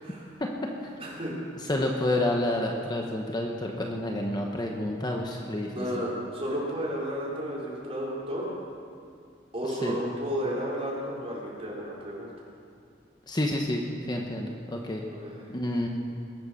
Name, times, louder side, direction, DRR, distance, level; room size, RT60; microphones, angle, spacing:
voice 1, 1.0-1.3 5.7-8.5 9.5-12.3 15.1-15.4, equal, 35° right, -5 dB, 4.1 m, -32 dB
voice 2, 1.6-5.9 9.8-10.0 13.3-13.8 14.1-15.0 15.5-15.9, left 1 dB, 25° left, 1 dB, 1.0 m, -29 dB
21.0 x 8.2 x 6.4 m, 2.3 s
head